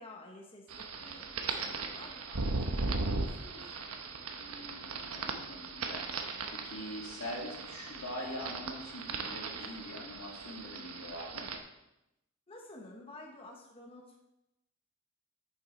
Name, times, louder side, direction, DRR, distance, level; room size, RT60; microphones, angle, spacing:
voice 1, 0.0-3.8 12.5-14.2, left 1 dB, 25° left, -1 dB, 1.0 m, -51 dB
sound 1, 0.7-11.6, right 3 dB, 85° right, 0.9 m, -38 dB
voice 2, 4.4-11.5, left 1 dB, 80° left, -1 dB, 2.3 m, -44 dB
8.7 x 7.0 x 4.4 m, 0.88 s
head